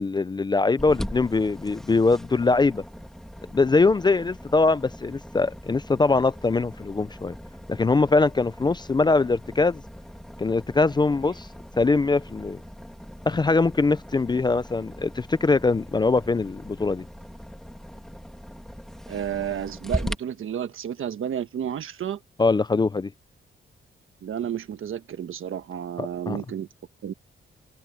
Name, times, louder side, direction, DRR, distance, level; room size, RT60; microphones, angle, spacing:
voice 1, 0.0-2.8 3.5-7.3 7.7-9.8 10.4-11.5 11.8-12.6 13.3-17.0 22.4-23.1 26.0-26.4, left 3 dB, 20° left, 0.4 m, -22 dB
sound 1, 0.8-20.1, equal, ahead, 2.4 m, -39 dB
voice 2, 19.1-22.2 24.2-26.7 27.0-27.1, right 9 dB, 75° right, 1.3 m, -31 dB
open air
wide cardioid pair, 170°, 21 cm